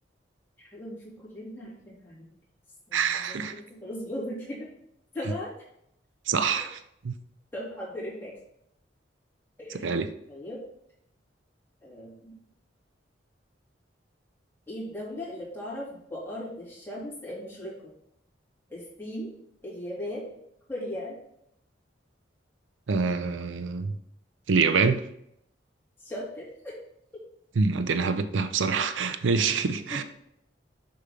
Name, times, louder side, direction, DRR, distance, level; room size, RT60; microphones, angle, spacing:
voice 1, 0.6-2.3 2.9-4.7 5.1-5.5 6.6-6.7 7.5-8.4 9.6-9.9 10.3-10.6 11.8-12.3 14.7-17.7 18.7-19.3 19.6-20.4 20.7-21.2 26.0-26.8 29.9-30.0, left 1 dB, 10° left, -7 dB, 2.8 m, -38 dB
voice 2, 2.9-3.5 6.3-6.8 7.0-7.1 9.8-10.1 22.9-23.9 24.5-25.0 27.6-30.0, right 5 dB, 85° right, 10 dB, 0.5 m, -25 dB
6.6 x 6.1 x 3.7 m, 0.74 s
head